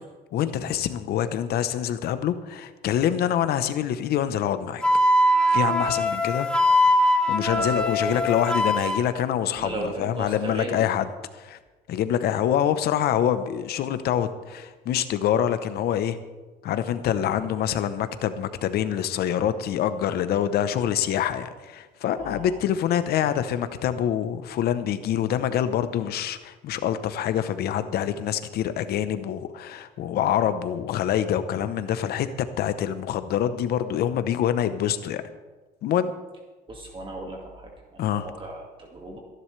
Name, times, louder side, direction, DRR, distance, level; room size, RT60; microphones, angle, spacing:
voice 1, 0.3-4.8 5.5-6.5 7.3-11.1 11.3-11.6 11.9-16.2 16.6-32.3 32.6-35.2 35.8-36.1 38.0-38.3, left 10 dB, 70° left, 11 dB, 0.9 m, -25 dB
Wind instrument woodwind instrument, 4.8-9.0, left 1 dB, 5° left, 1.4 m, -21 dB
voice 2, 7.5-8.3 9.6-10.9 22.1-22.6 36.7-39.2, right 2 dB, 30° right, 0 dB, 2.0 m, -36 dB
22.5 x 11.0 x 3.3 m, 1.2 s
cardioid pair, 110°, 17 cm